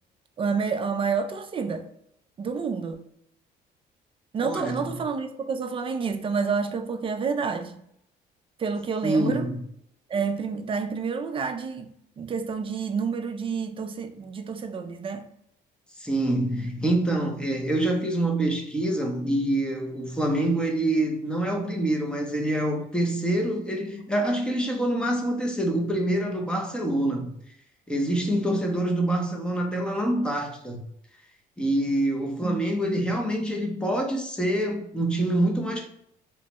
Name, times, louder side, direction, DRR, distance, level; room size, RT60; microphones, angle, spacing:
voice 1, 0.4-1.9 2.4-3.0 4.3-7.8 8.6-9.5 10.1-15.3 32.4-32.7, right 5 dB, 30° right, 0.4 m, -29 dB
voice 2, 4.4-4.8 9.0-9.5 16.0-27.3 27.9-30.8 31.6-35.9, right 1 dB, 5° left, 0.7 m, -26 dB
3.1 x 2.1 x 2.9 m
cardioid pair, 110°, 17 cm